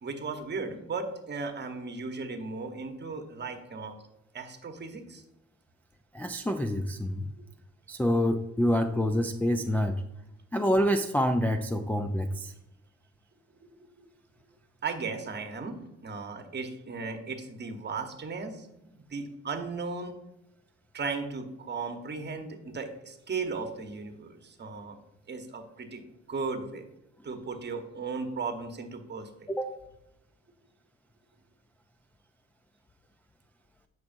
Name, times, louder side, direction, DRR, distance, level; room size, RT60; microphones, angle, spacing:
voice 1, 0.0-4.0 4.3-5.2 13.8-13.9 14.8-18.8 19.1-20.1 20.9-25.0 25.3-26.0 26.3-26.8 27.2-29.5, right 4 dB, 35° right, 6 dB, 1.1 m, -36 dB
voice 2, 6.1-7.2 7.9-10.0 10.5-12.5 29.5-29.7, equal, 5° left, 4 dB, 0.4 m, -27 dB
8.5 x 6.1 x 2.6 m, 0.90 s
cardioid pair, 90°, 30 cm